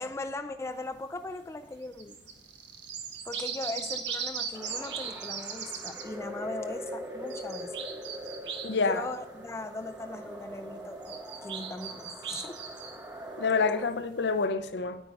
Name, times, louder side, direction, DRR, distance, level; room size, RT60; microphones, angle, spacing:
voice 1, 0.0-2.2 3.2-7.7 8.8-12.6, left 2 dB, 15° left, 0.3 m, -39 dB
sound 1, 2.0-6.1 7.3-8.8 11.0-13.0, right 7 dB, 70° right, 1.1 m, -38 dB
sound 2, 4.5-13.9, equal, 15° right, 0.7 m, -42 dB
voice 2, 8.6-9.1 13.4-15.0, left 4 dB, 65° left, 0.6 m, -27 dB
9.2 x 9.1 x 4.7 m
head